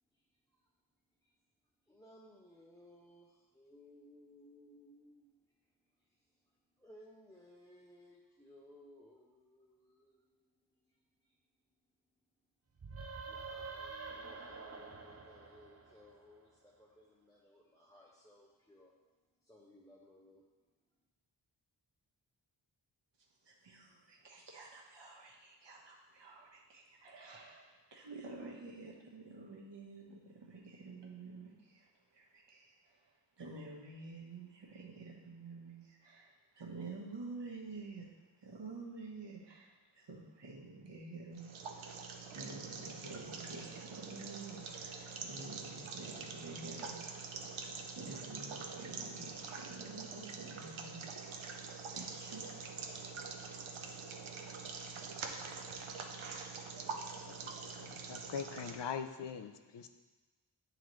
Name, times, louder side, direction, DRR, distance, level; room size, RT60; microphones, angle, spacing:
voice 1, 1.9-5.6 6.0-6.2 6.8-11.4 13.3-19.0 19.4-20.4, left 1 dB, 5° left, -4 dB, 0.7 m, -61 dB
sound 1, 12.8-16.4, right 4 dB, 30° right, 0.7 m, -47 dB
voice 2, 23.4-38.1 38.4-47.5 47.9-51.1 51.4-52.4, right 3 dB, 60° right, -2 dB, 1.2 m, -50 dB
sound 2, 41.3-58.8, right 5 dB, 80° right, 0.7 m, -45 dB
voice 3, 57.4-59.9, left 7 dB, 60° left, 8 dB, 0.6 m, -42 dB
8.6 x 4.0 x 3.1 m, 1.3 s
cardioid pair, 55°, 47 cm